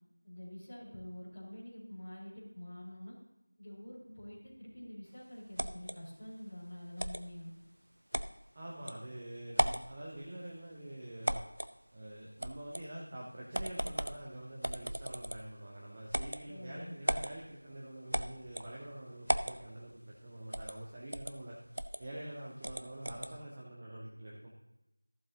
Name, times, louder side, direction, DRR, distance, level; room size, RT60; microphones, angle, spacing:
voice 1, 0.2-3.1 3.6-7.5 16.5-16.9, left 1 dB, 10° left, -11 dB, 2.5 m, -47 dB
sound 1, 5.6-6.0 7.0-7.2 8.1-8.3 8.9-9.0 9.5-9.9 11.2-11.7 12.4-12.9 13.5-14.2 14.6-15.5 16.1-16.4 17.1-17.3 18.1-18.7 19.3-19.6 20.5-20.8 21.1-21.3 21.8-22.0 22.6-23.3, equal, 75° right, 0.7 m, -35 dB
voice 2, 8.5-11.4 11.9-21.6 22.0-24.5, right 1 dB, 10° right, -4 dB, 0.5 m, -46 dB
14.5 x 7.8 x 2.8 m, 0.93 s
figure-of-eight pair, 180°, 0 cm